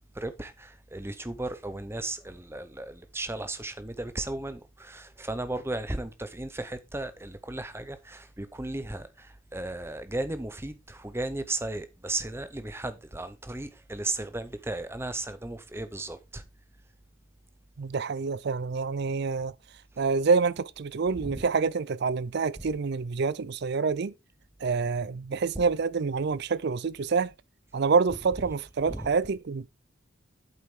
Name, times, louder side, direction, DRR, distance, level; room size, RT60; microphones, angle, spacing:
voice 1, 0.1-16.4 21.2-21.4 22.6-22.7 28.8-29.1, right 2 dB, 10° right, 0.7 m, -35 dB
voice 2, 17.8-19.5 20.0-24.1 24.6-27.3 27.7-29.7, right 5 dB, 50° right, 0.4 m, -27 dB
8.6 x 7.6 x 3.7 m
head